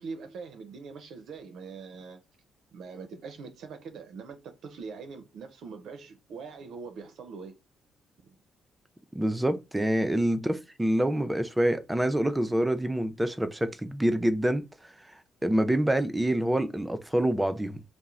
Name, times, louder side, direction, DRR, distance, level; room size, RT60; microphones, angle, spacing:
voice 1, 0.0-2.2 2.7-7.6, right 5 dB, 70° right, 0.5 m, -42 dB
voice 2, 9.1-14.7 15.4-17.8, right 1 dB, 10° right, 0.4 m, -26 dB
2.9 x 2.0 x 2.4 m
cardioid pair, 90°, 0 cm